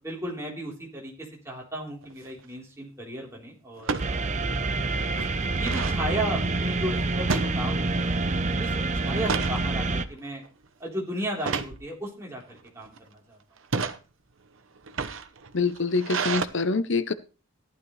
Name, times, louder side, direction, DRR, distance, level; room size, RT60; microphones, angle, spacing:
voice 1, 0.0-4.2 5.6-8.3 8.6-10.4 10.8-13.4, right 1 dB, 15° right, 3.7 m, -35 dB
sound 1, 2.0-2.4 3.8-4.1 4.6-4.7 5.0-6.0 7.3-8.1 8.4-8.7 9.1-9.6 10.2-10.5 11.4-11.8 12.5-13.0 13.6-14.0 14.8-16.4, right 5 dB, 65° right, 0.9 m, -31 dB
sound 2, 4.0-10.0, right 2 dB, 35° right, 0.7 m, -27 dB
voice 2, 15.5-17.1, left 4 dB, 55° left, 0.7 m, -25 dB
14.5 x 11.5 x 3.2 m
head